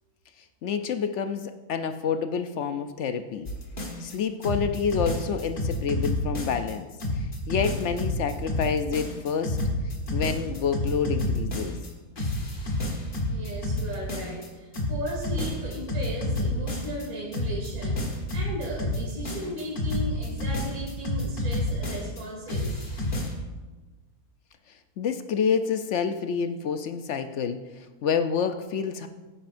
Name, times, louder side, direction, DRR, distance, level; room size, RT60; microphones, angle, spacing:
voice 1, 0.6-3.5 4.0-6.9 7.2-9.6 10.1-11.8 25.0-29.1, left 6 dB, 65° left, 8 dB, 0.8 m, -28 dB
sound 1, 3.5-4.1 4.4-6.7 7.0-11.9 12.2-14.5 14.7-17.1 17.3-22.2 22.5-23.3, left 1 dB, 35° left, 1.4 m, -29 dB
voice 2, 13.3-22.8, equal, 75° right, -3 dB, 2.7 m, -36 dB
16.0 x 9.9 x 2.6 m, 1.2 s
omnidirectional pair, 1.5 m